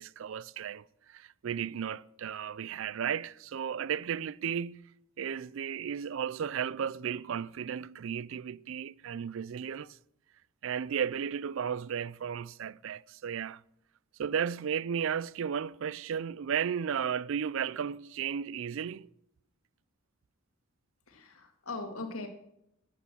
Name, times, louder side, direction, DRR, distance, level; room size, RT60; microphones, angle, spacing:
voice 1, 0.0-4.8 5.2-10.0 10.6-13.6 14.2-19.1, right 8 dB, 60° right, 0.4 m, -34 dB
voice 2, 21.1-22.3, left 3 dB, 75° left, 2.4 m, -40 dB
12.5 x 8.3 x 7.7 m
head